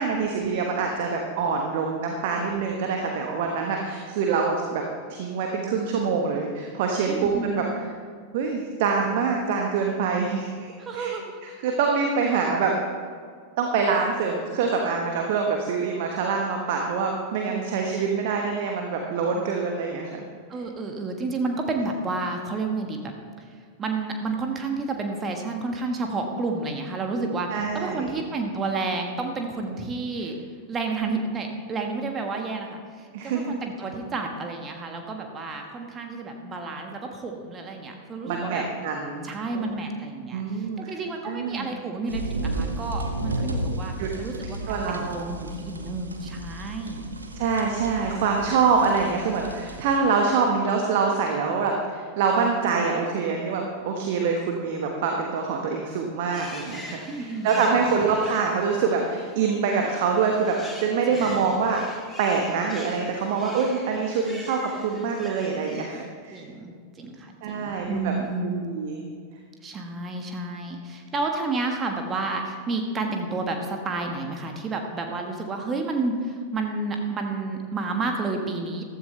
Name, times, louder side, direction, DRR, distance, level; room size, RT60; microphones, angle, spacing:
voice 1, 0.0-4.8 5.1-7.6 8.3-10.7 10.9-11.1 11.6-12.7 13.6-20.2 27.5-28.1 33.1-33.5 38.2-39.7 40.3-40.9 41.2-41.7 44.0-44.1 44.6-45.3 47.3-61.9 62.2-66.4 67.4-68.1 68.6-69.0, right 5 dB, 50° right, 2 dB, 1.3 m, -25 dB
voice 2, 7.0-7.8 10.8-11.4 17.5-17.8 20.5-23.0 23.8-30.3 30.7-38.7 39.2-47.0 57.1-57.9 61.1-61.2 66.3-68.6 69.6-78.8, right 3 dB, 20° right, 3 dB, 1.4 m, -30 dB
sound 1, 42.1-50.0, right 2 dB, 75° right, 1.0 m, -33 dB
sound 2, 56.3-65.9, left 1 dB, 5° left, 2.4 m, -44 dB
15.0 x 13.0 x 3.3 m, 2.1 s
figure-of-eight pair, 90°, 0 cm